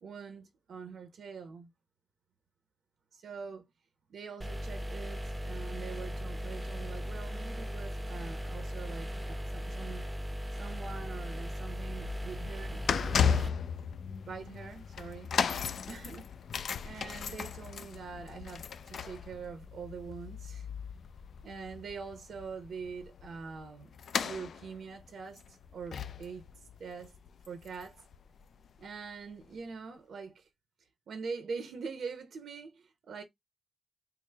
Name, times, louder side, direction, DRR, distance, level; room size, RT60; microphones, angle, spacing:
voice 1, 0.0-1.7 3.1-3.7 4.1-10.1 10.5-12.8 14.3-15.3 15.9-16.3 16.8-20.7 21.4-24.0 24.2-26.5 26.8-27.1 27.5-28.0 28.8-30.5 31.1-33.2, right 5 dB, 85° right, 0.7 m, -44 dB
sound 1, 4.4-13.5, equal, 10° right, 0.5 m, -38 dB
sound 2, 11.8-28.2 28.4-28.7 29.4-29.5, left 7 dB, 75° left, 0.3 m, -36 dB
4.6 x 2.0 x 3.3 m
wide cardioid pair, 140°, 0 cm